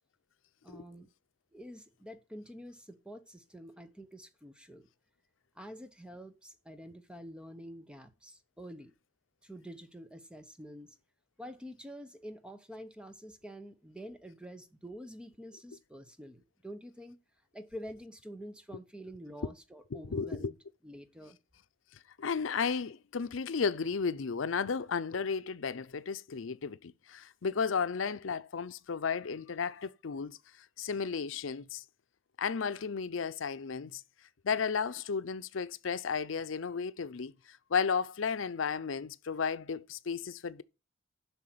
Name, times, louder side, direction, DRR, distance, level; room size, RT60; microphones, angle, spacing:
voice 1, 0.6-1.1 1.5-4.9 5.5-8.9 9.4-11.0 11.4-17.2 17.5-20.6 20.8-21.4, equal, 5° right, 0.9 m, -47 dB
voice 2, 19.9-20.5 22.2-31.8 32.4-34.0 34.4-40.6, left 5 dB, 85° left, 0.6 m, -34 dB
7.9 x 5.7 x 7.7 m
head